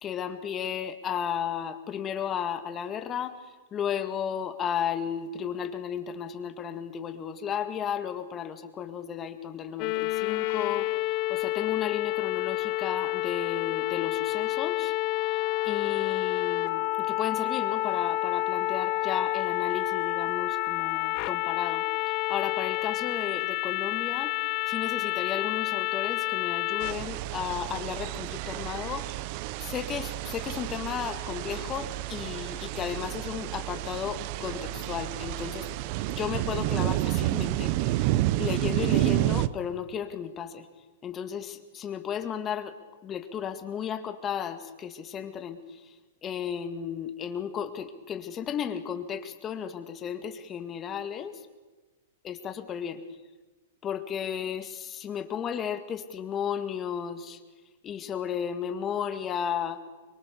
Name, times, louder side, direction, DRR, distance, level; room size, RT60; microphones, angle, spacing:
voice 1, 0.0-3.3 3.7-14.9 15.2-29.1 29.6-35.7 36.1-40.7 41.0-42.7 43.0-46.0 46.2-51.4 52.2-53.0 53.8-57.4 57.8-59.8, left 8 dB, 25° left, 8 dB, 2.0 m, -34 dB
Trumpet, 9.7-17.0, left 11 dB, 70° left, 0.9 m, -47 dB
sound 1, 9.8-26.9, left 19 dB, 45° left, 0.8 m, -29 dB
sound 2, 26.8-39.5, right 16 dB, 50° right, 0.8 m, -30 dB
24.5 x 22.5 x 6.9 m, 1.3 s
hypercardioid pair, 125°, 0 cm